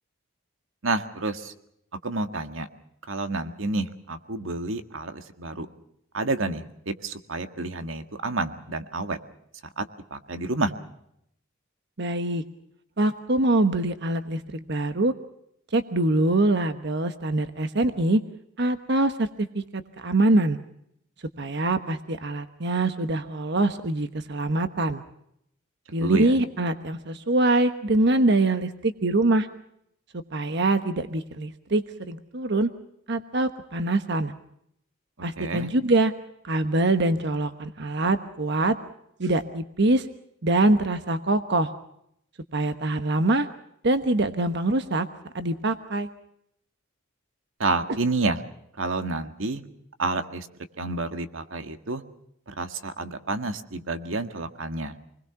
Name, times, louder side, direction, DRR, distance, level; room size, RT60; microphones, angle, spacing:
voice 1, 0.8-1.5 2.0-2.7 3.1-5.7 6.1-9.2 9.8-10.7 26.0-26.4 35.4-35.7 47.6-48.4 48.8-49.6 50.0-50.5 50.8-52.0 52.5-54.9, right 2 dB, 80° right, 8 dB, 1.8 m, -29 dB
voice 2, 12.0-12.4 13.0-15.1 15.7-18.2 18.6-19.3 19.5-20.6 21.4-25.0 25.9-29.5 30.3-32.7 33.1-34.3 35.2-36.1 36.4-38.8 39.2-40.1 40.4-41.7 42.5-43.5 43.8-45.1 45.3-46.1, right 2 dB, 60° right, 9 dB, 1.2 m, -24 dB
28.0 x 21.0 x 5.9 m, 0.75 s
head